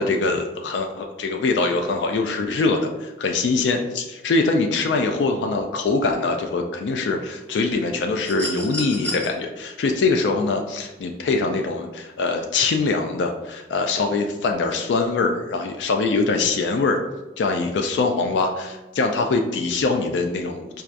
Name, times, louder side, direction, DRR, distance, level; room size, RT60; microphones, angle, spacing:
voice 1, 0.0-17.0 17.4-20.7, left 3 dB, 85° left, 4 dB, 0.3 m, -23 dB
sound 1, 8.2-9.3 10.8-10.9, equal, 5° left, 0.9 m, -31 dB
4.4 x 2.3 x 2.5 m, 1.1 s
head